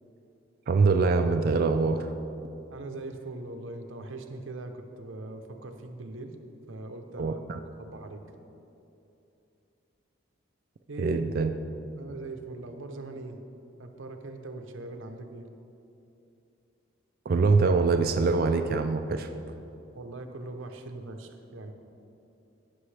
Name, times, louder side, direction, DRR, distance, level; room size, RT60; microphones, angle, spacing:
voice 1, 0.7-2.1 7.2-7.6 11.0-11.5 17.3-19.3, right 4 dB, 45° right, 6 dB, 0.3 m, -24 dB
voice 2, 2.7-6.4 6.7-7.4 7.8-8.2 10.9-11.2 12.0-13.4 13.8-15.5 19.9-21.7, right 2 dB, 65° right, 5 dB, 0.7 m, -41 dB
15.5 x 6.1 x 3.3 m, 2.9 s
head